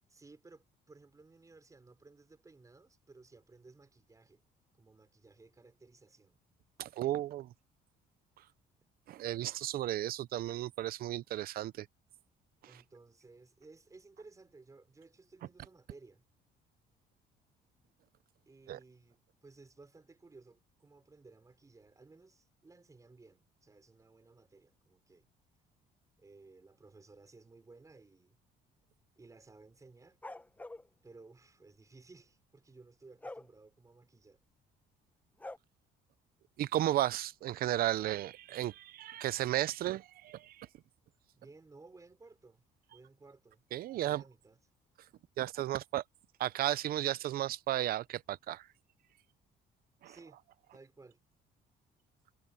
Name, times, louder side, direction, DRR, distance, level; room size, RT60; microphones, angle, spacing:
voice 1, 0.1-4.4 4.8-6.4 12.7-16.2 18.5-25.3 26.2-28.4 29.2-30.2 31.0-34.4 41.4-42.6 42.9-43.6 43.9-44.6 50.0-50.4 50.7-51.2, right 3 dB, 20° right, 4.2 m, -58 dB
voice 2, 6.8-7.5 9.1-11.9 18.7-18.8 36.6-40.7 43.7-44.2 45.4-46.0 46.4-48.6 50.0-50.2, right 13 dB, 60° right, 0.7 m, -34 dB
sound 1, 30.2-30.9 33.2-33.5 35.4-35.6, left 2 dB, 10° left, 1.0 m, -44 dB
cardioid pair, 110°, 17 cm